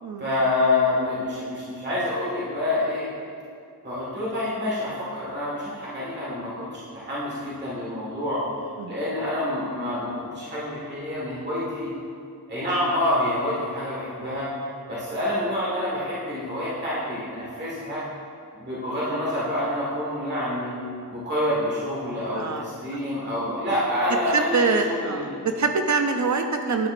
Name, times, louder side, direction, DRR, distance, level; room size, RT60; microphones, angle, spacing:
voice 1, 0.2-3.1 3.8-6.5 6.9-8.4 8.9-11.9 12.5-14.5 14.9-18.0 18.6-20.8 21.1-25.3, left 1 dB, 30° right, -8 dB, 1.6 m, -27 dB
voice 2, 22.3-22.6 24.3-26.9, right 4 dB, 50° right, 6 dB, 0.5 m, -24 dB
10.5 x 5.7 x 2.5 m, 2.4 s
wide cardioid pair, 85°, 37 cm